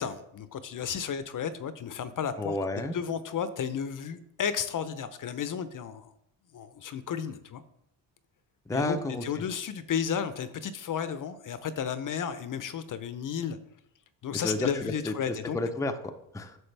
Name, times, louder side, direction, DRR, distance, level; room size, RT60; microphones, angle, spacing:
voice 1, 0.0-2.6 2.9-6.1 6.5-7.6 8.7-13.6 14.2-15.6, left 7 dB, 45° left, 12 dB, 0.7 m, -33 dB
voice 2, 2.4-2.9 8.7-9.2 14.4-16.6, left 2 dB, 5° left, 6 dB, 0.6 m, -31 dB
8.8 x 6.4 x 3.3 m, 0.79 s
cardioid pair, 85°, 45 cm